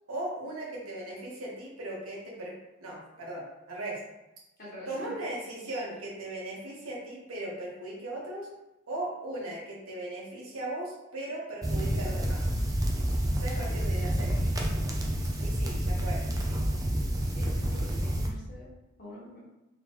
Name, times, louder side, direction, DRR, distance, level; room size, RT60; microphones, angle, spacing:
voice 1, 0.1-2.5 2.8-4.0 4.9-8.5 8.9-12.4 13.3-14.4 15.4-16.6 17.9-18.0, right 1 dB, 85° right, -4 dB, 1.5 m, -38 dB
voice 2, 4.6-5.1 13.5-14.5 15.3-15.4 17.3-18.7 19.0-19.4, equal, 45° left, -6 dB, 1.4 m, -46 dB
sound 1, 11.6-18.3, right 1 dB, 15° right, 0.5 m, -29 dB
3.8 x 3.5 x 3.1 m, 0.98 s
head